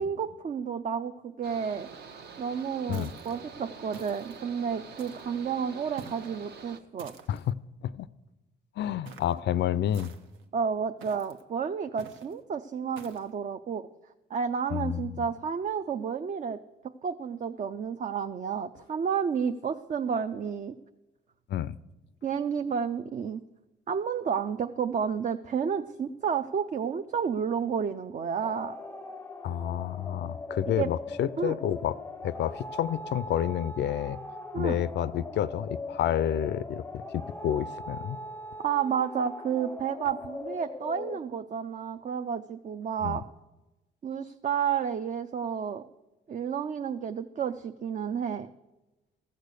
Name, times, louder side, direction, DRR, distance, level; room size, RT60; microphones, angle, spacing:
voice 1, 0.0-1.9 2.4-7.1 10.5-13.9 14.3-16.6 17.0-20.7 22.2-23.4 23.9-28.8 30.8-30.9 31.4-31.5 34.5-34.8 38.6-43.2 44.0-45.8 46.3-48.5, right 7 dB, 40° right, 8 dB, 0.5 m, -31 dB
Mechanical fan, 1.4-6.8, right 5 dB, 55° right, 1.0 m, -46 dB
sound 1, 2.9-3.4 3.9-4.4 5.0-5.4 6.0-6.4 7.0-7.5 9.1-9.4 9.9-10.4 11.0-11.4 12.0-12.3 13.0-13.3, right 6 dB, 80° right, 1.0 m, -48 dB
voice 2, 8.8-10.1 14.7-15.2 21.5-21.7 29.4-32.0 32.2-34.2 34.5-36.8 37.1-38.2 43.0-43.2, left 10 dB, 65° left, 17 dB, 0.4 m, -29 dB
sound 2, 28.4-41.2, left 2 dB, 10° left, 0.5 m, -40 dB
14.5 x 6.6 x 6.6 m, 1.0 s
cardioid pair, 90°, 20 cm